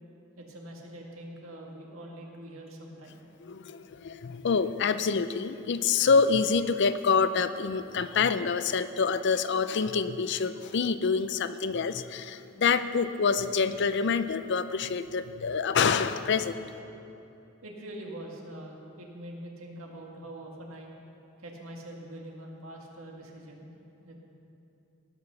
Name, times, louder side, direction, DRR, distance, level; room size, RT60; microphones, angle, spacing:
voice 1, 0.4-3.2 17.6-20.9 21.4-23.7 24.0-24.2, right 1 dB, 85° right, 0 dB, 1.9 m, -44 dB
voice 2, 3.4-16.6, left 5 dB, 55° left, 12 dB, 0.5 m, -26 dB
18.0 x 6.1 x 6.9 m, 2.8 s
head